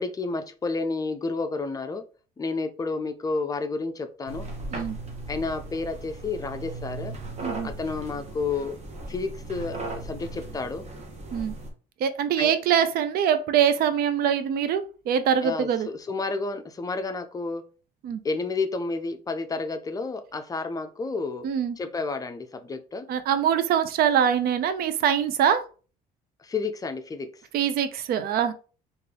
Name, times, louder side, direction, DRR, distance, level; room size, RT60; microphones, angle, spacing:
voice 1, 0.0-2.0 2.4-4.5 5.3-7.1 7.6-8.8 9.1-10.9 12.4-12.5 15.4-17.6 18.2-21.5 21.8-23.1 26.4-27.4, left 3 dB, 20° left, 9 dB, 0.5 m, -30 dB
sound 1, 4.3-11.7, right 2 dB, 40° right, 1.0 m, -37 dB
voice 2, 12.0-15.9 18.0-18.2 21.4-21.8 23.1-25.6 27.5-28.5, right 8 dB, 65° right, 10 dB, 0.5 m, -23 dB
3.7 x 2.5 x 3.3 m, 0.37 s
cardioid pair, 110°, 17 cm